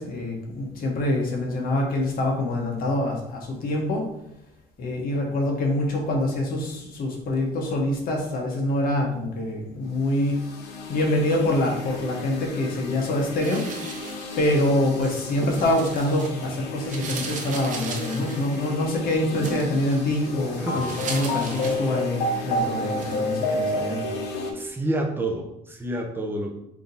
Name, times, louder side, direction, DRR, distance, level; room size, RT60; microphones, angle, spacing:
voice 1, 0.0-4.1 4.8-10.5 10.9-13.6 14.4-24.0, left 1 dB, 60° left, 0 dB, 1.2 m, -25 dB
sound 1, 10.1-24.5, left 1 dB, 90° left, 0.7 m, -31 dB
sound 2, 13.3-16.5 16.8-22.4 22.8-23.2, right 3 dB, 50° right, 0.9 m, -37 dB
voice 2, 20.6-21.0 24.5-26.6, right 1 dB, 10° right, 1 dB, 0.7 m, -29 dB
3.5 x 2.8 x 3.9 m, 0.81 s
cardioid pair, 110°, 17 cm